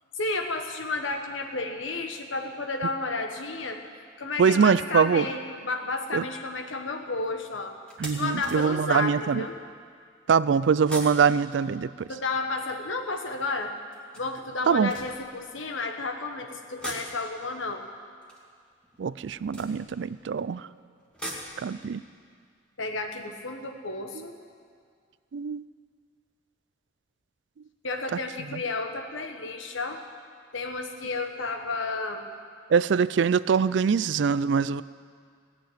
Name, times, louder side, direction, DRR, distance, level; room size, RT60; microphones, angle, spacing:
voice 1, 0.2-3.8 4.2-7.7 8.1-9.6 12.1-13.7 14.1-17.8 22.8-24.3 27.8-30.0 30.5-32.3, left 3 dB, 80° left, 5 dB, 1.3 m, -32 dB
voice 2, 4.4-5.3 6.1-6.2 8.0-9.5 10.3-12.1 14.7-14.9 19.0-20.7 21.6-22.0 25.3-25.6 28.5-28.6 32.7-34.8, right 6 dB, 65° right, 17 dB, 0.4 m, -23 dB
sound 1, 5.6-5.8 6.4-6.6 7.0-7.1 7.9-9.6 10.7-13.0 13.9-15.9 16.6-20.4 20.9-23.9 24.2-24.3 24.6-24.7, right 1 dB, 5° left, 1.9 m, -44 dB
18.0 x 6.9 x 9.3 m, 2.1 s
head